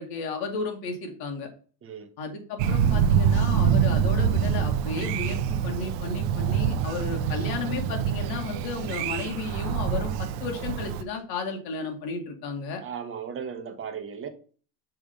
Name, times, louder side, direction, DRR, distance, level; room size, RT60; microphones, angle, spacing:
voice 1, 0.0-1.5 2.2-12.8, left 4 dB, 50° left, 2.0 m, -33 dB
Thunder, 2.6-11.0, right 8 dB, 85° right, 0.9 m, -25 dB
voice 2, 12.8-14.3, right 7 dB, 25° right, 1.2 m, -36 dB
6.9 x 3.5 x 5.2 m
supercardioid pair, 125°, 48 cm